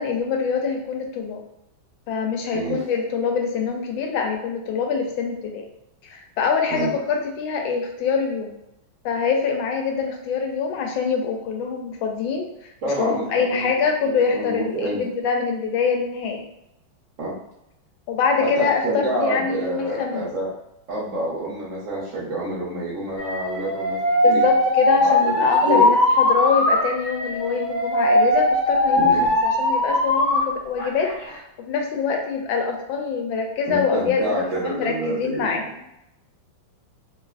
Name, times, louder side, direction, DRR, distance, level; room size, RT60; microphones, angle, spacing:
voice 1, 0.0-1.4 2.1-5.6 6.0-8.5 9.0-16.4 18.1-20.3 24.2-35.6, left 5 dB, 80° left, 2 dB, 1.3 m, -24 dB
voice 2, 12.8-13.7 14.0-15.0 17.2-17.3 18.4-20.5 20.9-24.4 24.9-25.9 29.0-29.3 33.7-35.6, right 1 dB, 55° right, -7 dB, 0.9 m, -28 dB
Alarm, 23.2-30.4 30.8-31.4, left 1 dB, 50° left, 0.9 m, -20 dB
3.4 x 2.4 x 2.4 m, 0.84 s
omnidirectional pair, 2.2 m